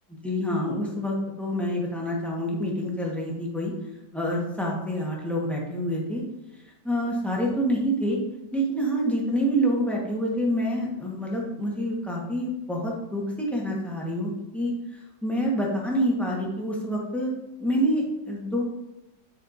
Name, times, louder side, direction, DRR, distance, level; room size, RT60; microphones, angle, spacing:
voice 1, 0.2-3.7 4.1-6.2 6.8-8.2 8.5-14.7 15.2-17.3 17.6-18.6, equal, ahead, -4 dB, 1.0 m, -27 dB
9.0 x 4.4 x 2.6 m, 0.95 s
omnidirectional pair, 1.9 m